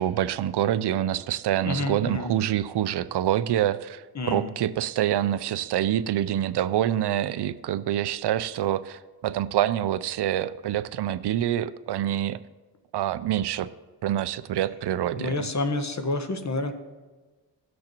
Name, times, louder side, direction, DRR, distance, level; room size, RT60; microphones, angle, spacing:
voice 1, 0.0-12.4 12.9-13.7 14.0-15.4, right 11 dB, 65° right, 15 dB, 0.6 m, -26 dB
voice 2, 1.7-2.3 4.1-4.5 15.2-16.7, left 2 dB, 40° left, 7 dB, 1.3 m, -29 dB
17.5 x 6.4 x 3.0 m, 1.3 s
cardioid pair, 60°, 43 cm